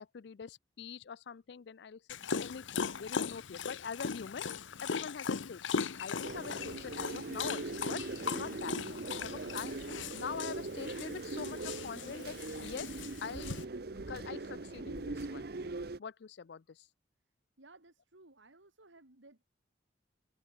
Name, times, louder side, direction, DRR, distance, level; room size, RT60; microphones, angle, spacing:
voice 1, 0.0-2.0 2.4-8.0 8.3-9.8 10.1-13.5 13.9-15.5 16.0-16.9, left 6 dB, 60° left, 0.4 m, -44 dB
Dog, 2.1-13.6, left 5 dB, 85° left, 0.8 m, -39 dB
sound 1, 6.2-16.0, right 2 dB, 55° right, 0.8 m, -41 dB
voice 2, 17.6-19.5, right 2 dB, 85° right, 3.0 m, -59 dB
open air
head